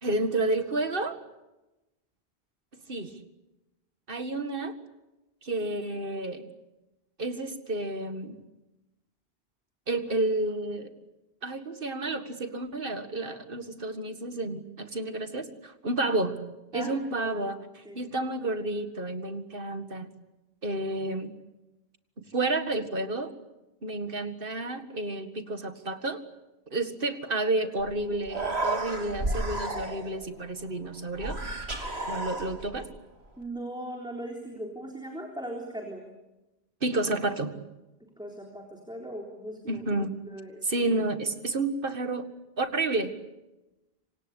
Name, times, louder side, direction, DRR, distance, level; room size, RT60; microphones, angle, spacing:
voice 1, 0.0-1.2 2.9-3.1 4.1-4.8 5.4-6.5 7.2-8.4 9.9-10.9 11.4-16.4 16.7-20.1 20.6-21.3 22.2-23.3 23.8-26.2 26.7-31.4 32.1-32.9 36.8-37.6 39.7-40.2 40.6-42.3 42.6-43.1, right 2 dB, 60° right, 9 dB, 2.1 m, -30 dB
voice 2, 16.7-17.3 17.8-18.0 33.4-36.0 38.2-39.8 40.3-40.6, right 1 dB, 5° right, 1 dB, 3.8 m, -39 dB
Human voice, 27.8-27.9 28.2-30.3 31.2-32.8, right 2 dB, 85° right, 3.5 m, -32 dB
27.0 x 26.0 x 8.3 m, 1.0 s
omnidirectional pair, 1.0 m